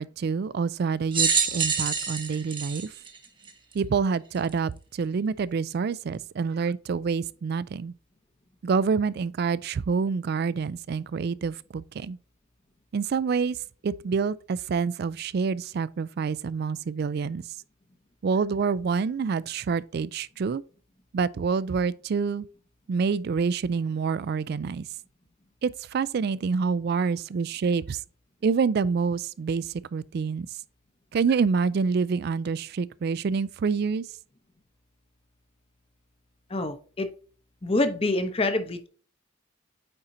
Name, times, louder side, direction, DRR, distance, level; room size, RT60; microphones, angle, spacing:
voice 1, 0.0-2.9 3.7-7.9 8.6-12.2 12.9-13.6 13.8-17.4 18.2-20.6 21.1-22.5 22.9-24.9 25.6-28.0 28.4-30.5 31.1-34.0, right 5 dB, 50° right, 0.3 m, -27 dB
sound 1, 1.1-3.8 4.5-4.6 5.7-5.8, right 5 dB, 25° right, 1.0 m, -26 dB
voice 2, 36.5-37.1 37.6-38.9, left 2 dB, 30° left, 0.7 m, -26 dB
8.7 x 4.3 x 2.7 m
head